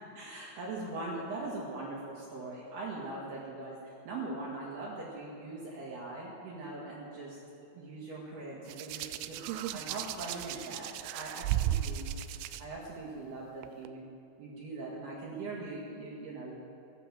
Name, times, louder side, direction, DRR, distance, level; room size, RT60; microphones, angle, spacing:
voice 1, 0.2-7.4 7.7-12.1 12.6-14.0 14.4-16.6, right 2 dB, 60° right, -5 dB, 3.6 m, -41 dB
Hands, 8.7-12.6 13.6-13.9, right 12 dB, 90° right, 3.2 m, -35 dB
15.5 x 11.0 x 7.7 m, 2.8 s
omnidirectional pair, 5.6 m